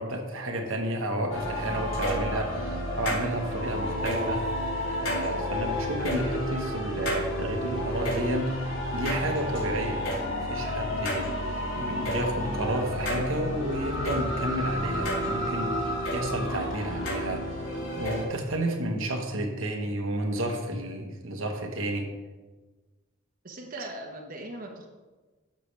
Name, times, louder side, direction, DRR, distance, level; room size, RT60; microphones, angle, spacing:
voice 1, 0.0-4.4 5.0-17.6 18.0-22.1, right 1 dB, 75° right, 2 dB, 1.3 m, -31 dB
sound 1, 1.3-18.2, equal, 75° left, 3.0 m, -31 dB
voice 2, 23.4-24.9, right 1 dB, 40° right, 0 dB, 1.1 m, -40 dB
12.0 x 6.8 x 3.4 m, 1.3 s
head